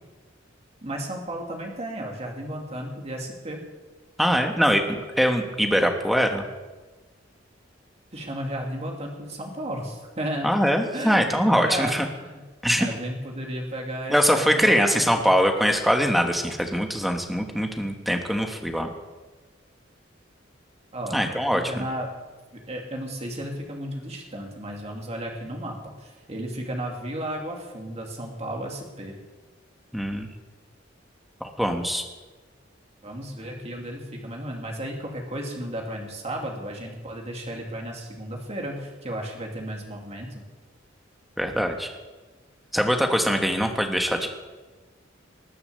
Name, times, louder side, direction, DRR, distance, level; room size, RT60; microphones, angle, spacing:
voice 1, 0.8-3.6 8.1-10.6 10.9-12.4 12.8-15.3 20.9-21.3 21.5-22.1 22.7-29.1 33.0-40.4, right 1 dB, 35° right, 1 dB, 2.4 m, -34 dB
voice 2, 4.2-6.4 10.4-12.1 12.6-12.9 14.1-18.9 21.1-21.8 29.9-30.3 31.6-32.0 41.4-41.9 42.7-44.4, equal, ahead, 4 dB, 1.3 m, -22 dB
19.5 x 7.0 x 6.9 m, 1.3 s
head